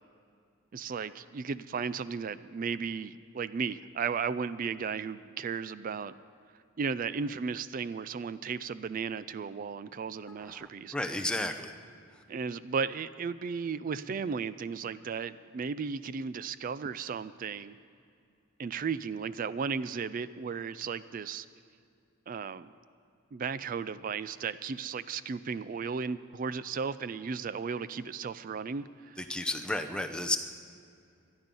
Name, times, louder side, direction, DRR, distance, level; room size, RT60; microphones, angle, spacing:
voice 1, 0.7-6.1 6.8-10.9 12.3-17.8 18.6-21.5 22.3-22.7 23.3-29.2, right 5 dB, 40° right, 15 dB, 0.3 m, -35 dB
voice 2, 10.4-11.7 29.2-30.4, left 1 dB, 5° left, 6 dB, 0.7 m, -33 dB
19.5 x 12.5 x 5.4 m, 2.5 s
head